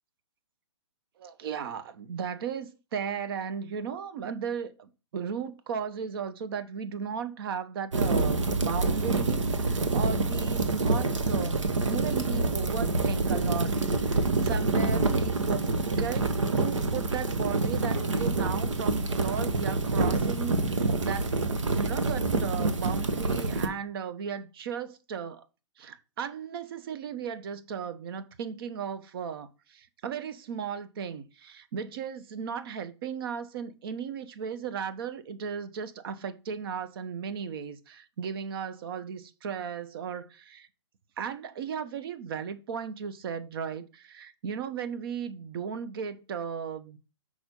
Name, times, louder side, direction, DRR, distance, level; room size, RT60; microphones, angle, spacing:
voice 1, 1.2-15.7 16.0-25.5 25.8-40.7 41.2-47.0, right 7 dB, 50° right, 0.9 m, -36 dB
sound 1, 7.9-23.7, right 3 dB, 80° right, 1.2 m, -27 dB
6.0 x 5.0 x 5.3 m
hypercardioid pair, 135°, 16 cm